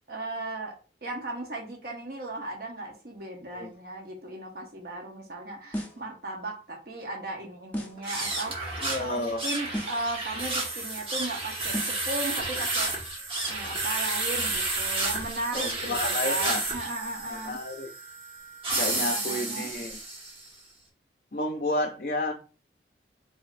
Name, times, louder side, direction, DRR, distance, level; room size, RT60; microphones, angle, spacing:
voice 1, 0.1-0.7 1.0-13.0 13.4-17.6 18.7-19.7, right 2 dB, 55° right, -1 dB, 0.9 m, -36 dB
sound 1, 5.7-6.1 7.7-8.1 9.7-10.1 11.7-12.1, equal, 10° left, 0.6 m, -35 dB
sound 2, 8.0-20.5, right 2 dB, 30° right, 1.0 m, -31 dB
voice 2, 8.8-9.4 15.5-16.6 17.3-17.9 18.8-20.0 21.3-22.3, left 2 dB, 50° left, 2 dB, 0.5 m, -31 dB
5.0 x 2.7 x 2.5 m, 0.34 s
head